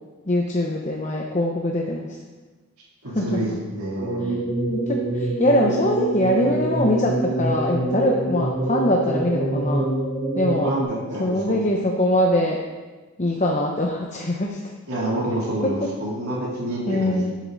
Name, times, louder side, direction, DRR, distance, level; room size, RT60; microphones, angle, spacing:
voice 1, 0.3-2.1 3.1-3.4 4.3-4.4 4.7-9.9 10.4-10.7 11.2-12.6 13.2-14.6 16.9-17.3, left 1 dB, 30° left, 0 dB, 0.9 m, -22 dB
voice 2, 3.0-4.2 10.6-11.6 14.9-17.2, right 1 dB, 80° right, -7 dB, 3.6 m, -28 dB
sound 1, 4.0-10.8, right 2 dB, 15° right, 2.8 m, -25 dB
14.0 x 8.3 x 4.1 m, 1.3 s
head